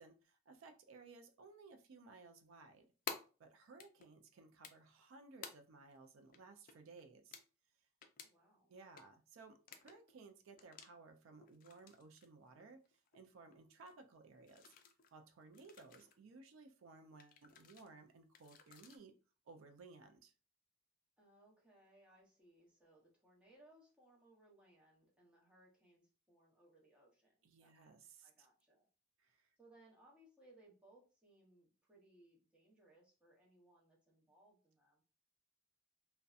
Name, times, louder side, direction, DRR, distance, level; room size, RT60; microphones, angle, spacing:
voice 1, 0.0-2.9 3.4-7.4 8.7-12.9 13.1-14.7 15.1-19.1 19.5-20.3 27.4-28.5 29.2-29.5, right 4 dB, 85° right, 0.4 m, -59 dB
sound 1, 3.1-3.2 3.8-4.1 4.6-5.0 5.4-5.5 5.9-6.0 6.3-6.4 6.7-7.0 7.3-7.4 8.0-8.3 8.7-9.1 9.6-10.1 10.5-10.9 11.4-12.3 12.6-13.2 13.5-13.6 13.9-14.0 14.4-15.1 15.5-16.1 17.2-17.9 18.3-19.0, left 6 dB, 45° left, 0.3 m, -52 dB
voice 2, 8.2-8.7 21.2-27.3 27.6-27.9 28.2-28.9 29.6-35.0, right 1 dB, 5° right, 0.7 m, -67 dB
2.6 x 2.1 x 2.3 m
head